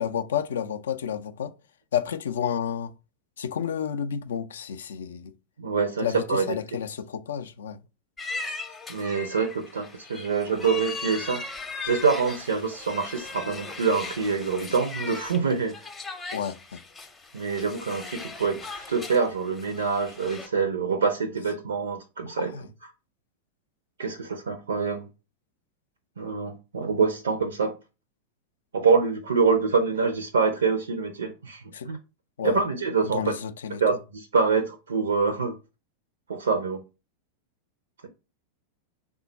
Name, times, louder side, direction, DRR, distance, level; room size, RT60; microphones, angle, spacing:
voice 1, 0.0-1.5 1.9-2.9 3.4-5.3 6.0-7.8 16.3-16.8 22.3-22.6 31.7-31.9 32.4-32.6 33.0-33.8, left 8 dB, 65° left, 0.4 m, -30 dB
voice 2, 5.6-6.6 8.9-11.4 11.8-15.8 17.3-22.5 24.0-25.1 26.2-27.8 28.7-32.0 32.4-33.4 33.8-35.6 36.3-36.8, right 5 dB, 70° right, 0.4 m, -25 dB
sound 1, 8.2-20.5, left 4 dB, 15° left, 0.6 m, -39 dB
3.5 x 2.2 x 4.0 m
figure-of-eight pair, 90°, 0 cm